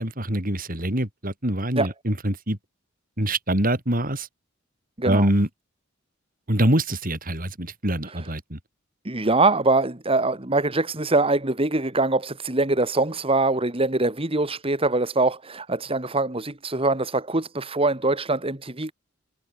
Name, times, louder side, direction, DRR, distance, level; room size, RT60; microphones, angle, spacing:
voice 1, 0.0-2.6 3.2-4.3 5.0-5.5 6.5-8.6, right 1 dB, 45° right, 5.1 m, -24 dB
voice 2, 5.0-5.3 8.1-8.3 9.0-18.9, right 2 dB, 30° right, 2.1 m, -23 dB
head